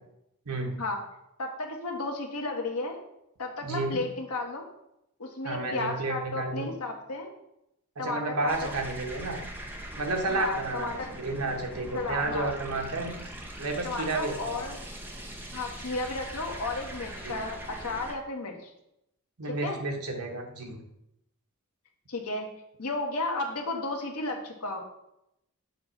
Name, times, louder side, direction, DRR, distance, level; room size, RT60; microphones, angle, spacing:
voice 1, 1.4-3.0 3.4-4.6 5.2-7.3 8.0-8.8 10.3-11.1 11.9-12.5 13.8-14.8 15.5-18.7 19.5-19.8 22.1-22.5 22.8-24.8, left 2 dB, 85° left, 2 dB, 1.2 m, -33 dB
voice 2, 3.6-4.0 5.4-6.7 8.0-9.4 10.0-10.9 11.2-13.2 13.6-14.7 17.2-17.4 19.4-20.8, right 2 dB, 80° right, 3 dB, 1.2 m, -31 dB
sound 1, 8.5-18.1, right 1 dB, 10° right, 0.6 m, -41 dB
7.5 x 3.0 x 5.6 m, 0.82 s
head